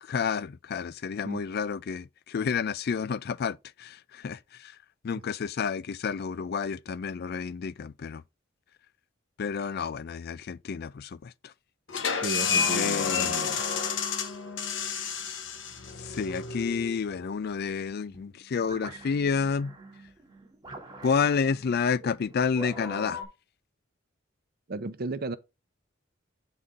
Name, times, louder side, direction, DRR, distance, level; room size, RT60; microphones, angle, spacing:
voice 1, 0.0-4.8 5.0-8.2 9.4-11.5 12.7-13.4 16.0-19.7 21.0-23.2, left 6 dB, 55° left, 0.4 m, -30 dB
sound 1, 11.9-17.3, left 6 dB, 70° left, 1.1 m, -30 dB
voice 2, 12.2-13.6 24.7-25.4, right 2 dB, 50° right, 0.7 m, -34 dB
sound 2, 18.1-23.3, equal, 20° right, 2.8 m, -44 dB
8.7 x 4.1 x 3.7 m
head